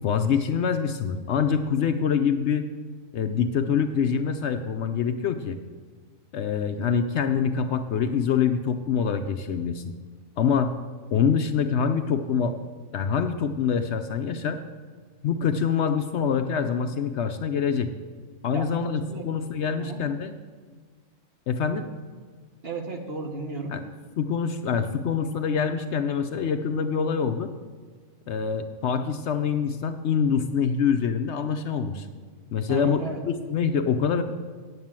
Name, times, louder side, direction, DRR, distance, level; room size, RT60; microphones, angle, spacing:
voice 1, 0.0-2.7 3.1-5.6 6.3-9.8 10.4-10.7 11.1-12.6 12.9-14.6 15.2-17.9 18.4-20.3 21.5-21.9 23.7-23.8 24.2-27.5 28.3-32.1 32.5-34.2, left 6 dB, 65° left, 8 dB, 0.8 m, -25 dB
voice 2, 19.0-19.3 19.8-20.0 22.6-23.7 32.7-33.2, right 2 dB, 50° right, 3 dB, 1.4 m, -34 dB
9.3 x 8.0 x 7.4 m, 1.5 s
omnidirectional pair, 1.4 m